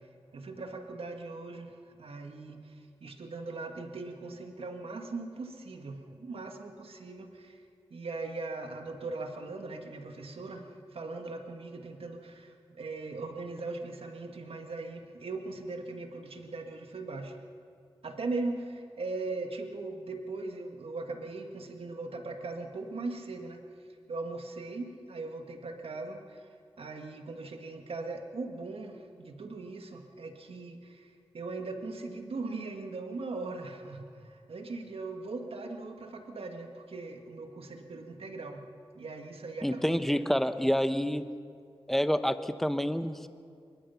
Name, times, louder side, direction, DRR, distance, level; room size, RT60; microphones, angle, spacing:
voice 1, 0.3-7.6 7.9-17.4 18.0-23.6 24.1-26.5 26.8-38.6 38.9-40.0, right 3 dB, 80° right, 4 dB, 2.0 m, -39 dB
voice 2, 39.6-41.2 41.9-43.3, equal, 5° left, 10 dB, 1.0 m, -28 dB
24.0 x 21.5 x 5.8 m, 2.3 s
cardioid pair, 60°, 10 cm